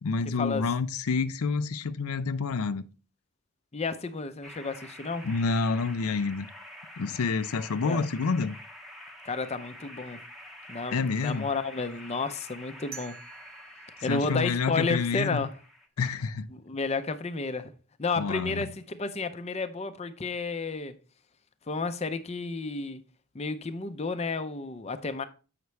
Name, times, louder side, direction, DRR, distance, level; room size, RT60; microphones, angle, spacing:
voice 1, 0.0-2.8 5.2-6.5 7.0-8.5 10.9-11.5 14.0-15.5 16.0-16.5 18.2-18.7, left 4 dB, 80° left, 0.5 m, -28 dB
voice 2, 3.7-5.3 7.8-8.1 9.2-10.2 10.7-13.2 14.0-15.5 16.5-17.7 18.0-21.0 21.7-23.0 23.3-25.2, left 4 dB, 30° left, 0.5 m, -32 dB
sound 1, 4.4-15.9, left 1 dB, ahead, 0.8 m, -47 dB
sound 2, 12.9-15.8, right 6 dB, 45° right, 0.8 m, -49 dB
8.0 x 5.8 x 3.2 m
head